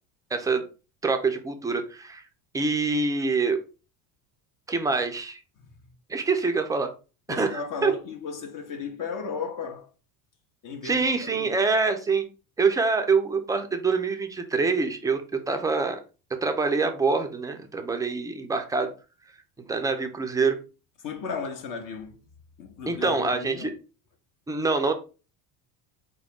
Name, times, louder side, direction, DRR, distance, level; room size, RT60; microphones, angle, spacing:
voice 1, 0.3-0.6 1.0-2.2 2.5-3.6 4.7-5.4 6.1-6.9 7.3-7.9 10.8-12.2 12.6-16.0 16.3-18.9 19.7-20.6 22.9-23.7 24.5-24.9, right 4 dB, 10° right, 0.4 m, -25 dB
voice 2, 7.3-9.9 10.6-11.6 21.0-22.1 22.6-23.7, left 5 dB, 40° left, 0.7 m, -35 dB
3.8 x 2.2 x 3.4 m
supercardioid pair, 95°, 50 cm